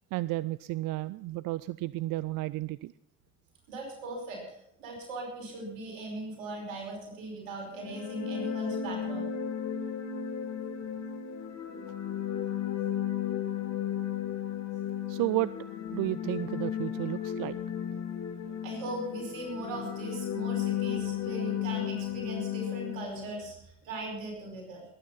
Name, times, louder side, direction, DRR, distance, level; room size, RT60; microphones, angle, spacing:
voice 1, 0.1-2.9 15.1-15.5 15.9-17.6, right 18 dB, 60° right, 18 dB, 0.5 m, -32 dB
voice 2, 3.7-9.3 18.6-24.8, right 2 dB, 80° right, 0 dB, 5.0 m, -39 dB
sound 1, 7.7-23.4, left 9 dB, 45° left, 2.3 m, -34 dB
20.0 x 9.5 x 5.8 m, 0.77 s
hypercardioid pair, 50°, 38 cm